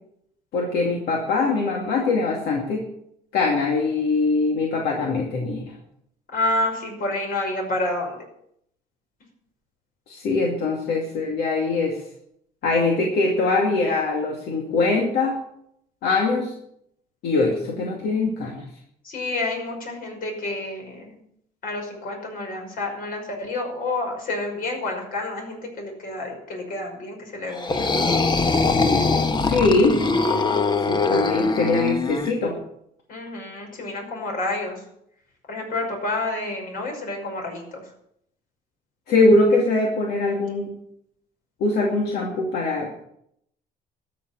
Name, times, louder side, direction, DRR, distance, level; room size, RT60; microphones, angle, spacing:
voice 1, 0.5-2.8 3.3-5.6 10.1-12.0 12.6-15.4 16.0-16.5 17.2-18.6 29.4-29.9 30.9-32.5 39.1-40.7 41.6-42.9, left 3 dB, 75° left, 0 dB, 2.4 m, -22 dB
voice 2, 6.3-8.2 19.0-21.2 21.6-27.9 30.3-30.7 33.1-34.8 35.5-37.8, left 2 dB, 55° left, 2 dB, 5.7 m, -29 dB
sound 1, 27.5-32.3, left 3 dB, 25° left, 1.0 m, -22 dB
13.0 x 7.4 x 8.6 m, 0.73 s
cardioid pair, 110°, 17 cm